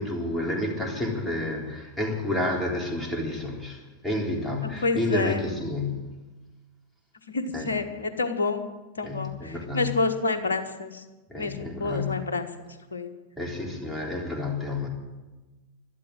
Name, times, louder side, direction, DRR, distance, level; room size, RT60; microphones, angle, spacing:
voice 1, 0.0-6.1 7.5-7.7 9.0-10.0 11.3-12.3 13.4-14.9, left 2 dB, 5° left, -2 dB, 3.7 m, -30 dB
voice 2, 4.8-5.4 7.3-8.6 9.0-11.0 11.4-12.5 12.9-13.1, left 3 dB, 70° left, 7 dB, 1.4 m, -28 dB
12.0 x 12.0 x 8.9 m, 1.2 s
figure-of-eight pair, 90°, 0 cm